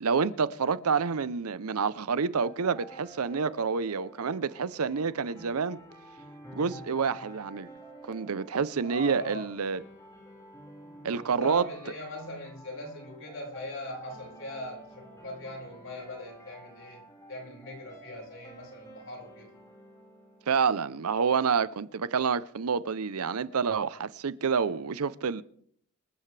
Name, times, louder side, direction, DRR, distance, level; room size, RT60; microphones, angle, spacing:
voice 1, 0.0-5.8 6.5-7.7 8.1-9.8 11.0-11.6 20.5-25.4, right 5 dB, 85° right, 0.6 m, -28 dB
sound 1, 2.3-21.3, right 1 dB, 15° left, 4.9 m, -51 dB
voice 2, 8.8-9.5 11.1-17.0 17.3-19.5, left 1 dB, 60° left, 5.3 m, -40 dB
25.5 x 14.0 x 3.3 m
head